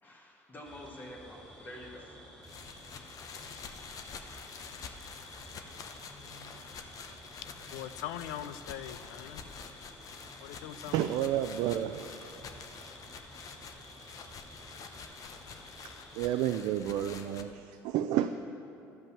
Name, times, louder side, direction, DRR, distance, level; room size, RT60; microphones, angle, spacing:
voice 1, 0.0-2.2, equal, 25° left, -1 dB, 1.7 m, -48 dB
sound 1, 0.6-16.4, equal, 10° left, 2.6 m, -52 dB
sound 2, 2.4-17.4, left 5 dB, 50° left, 0.8 m, -47 dB
voice 2, 7.7-9.4 10.4-11.0, left 11 dB, 85° left, 13 dB, 0.4 m, -41 dB
voice 3, 10.9-12.3 15.8-18.3, right 11 dB, 75° right, 7 dB, 0.4 m, -31 dB
12.0 x 5.3 x 7.2 m, 2.7 s
supercardioid pair, 90°, 7 cm